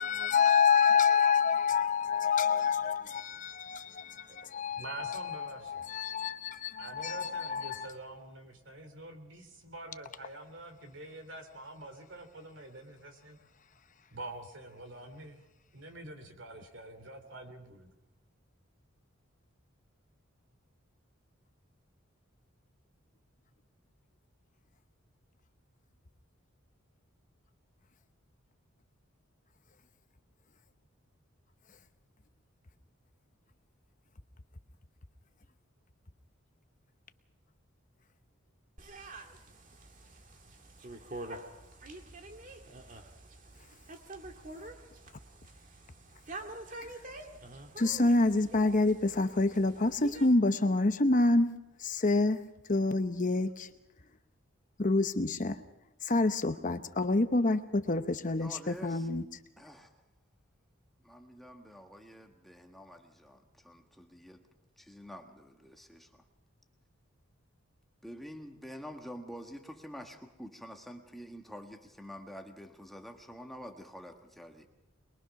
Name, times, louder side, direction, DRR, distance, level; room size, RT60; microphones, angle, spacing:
voice 1, 0.0-5.4 5.7-7.9 46.8-46.9 47.8-51.5 51.8-52.4 52.7-53.7 54.8-55.6 56.0-59.2, left 3 dB, 40° left, 0.8 m, -27 dB
voice 2, 4.8-5.8 6.8-13.4 14.1-15.4 15.7-17.9, right 2 dB, 60° right, 3.0 m, -46 dB
sound 1, 38.8-50.3, right 2 dB, 40° right, 1.8 m, -47 dB
voice 3, 58.4-59.1 59.6-59.9 61.0-64.4 64.8-66.1 68.0-74.7, equal, ahead, 1.4 m, -47 dB
22.5 x 22.5 x 5.9 m
head